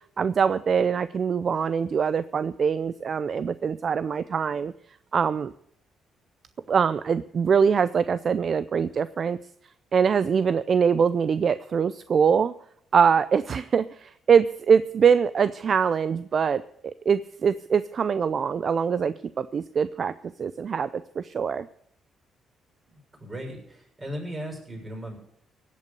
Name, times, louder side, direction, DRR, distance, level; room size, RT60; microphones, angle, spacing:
voice 1, 0.2-4.7 5.1-5.5 6.7-9.4 9.9-12.5 12.9-20.1 20.4-21.7, right 6 dB, 50° right, 15 dB, 0.5 m, -23 dB
voice 2, 23.2-25.2, equal, 25° right, 0 dB, 6.7 m, -36 dB
16.5 x 8.3 x 6.8 m, 0.71 s
cardioid pair, 90°, 0 cm